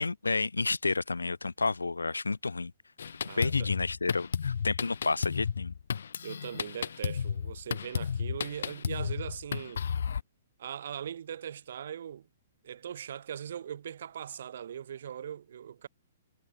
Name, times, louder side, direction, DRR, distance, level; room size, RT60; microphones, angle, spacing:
voice 1, 0.0-2.7 3.4-5.7, left 3 dB, 90° left, 1.8 m, -30 dB
Drum kit, 3.0-10.2, left 7 dB, 70° left, 1.0 m, -33 dB
voice 2, 3.2-3.7 6.2-9.8 10.6-12.3 12.6-15.9, right 9 dB, 65° right, 6.4 m, -40 dB
hypercardioid pair, 120°, 0 cm